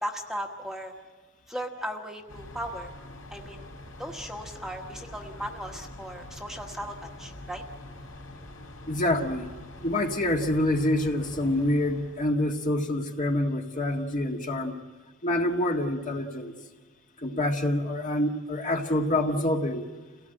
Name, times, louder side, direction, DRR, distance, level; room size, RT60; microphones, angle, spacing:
voice 1, 0.0-0.9 1.5-2.9 3.3-3.7 4.0-7.6, equal, ahead, 2 dB, 1.4 m, -37 dB
sound 1, 2.3-12.4, left 1 dB, 80° left, 4.7 m, -45 dB
voice 2, 8.9-9.5 9.8-14.8 15.2-16.5 17.2-19.8, left 1 dB, 40° left, 2 dB, 1.8 m, -26 dB
28.5 x 18.0 x 9.1 m, 1.3 s
head